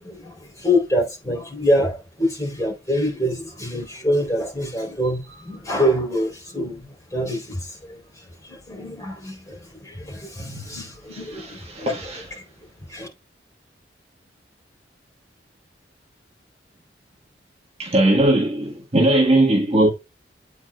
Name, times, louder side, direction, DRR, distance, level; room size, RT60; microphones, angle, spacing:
voice 1, 0.0-6.8 7.1-7.8 8.4-11.9 12.9-13.1, equal, 15° left, 3.7 m, -25 dB
voice 2, 11.1-12.4 17.8-19.9, right 1 dB, 35° right, 1.6 m, -20 dB
8.5 x 7.1 x 2.4 m
head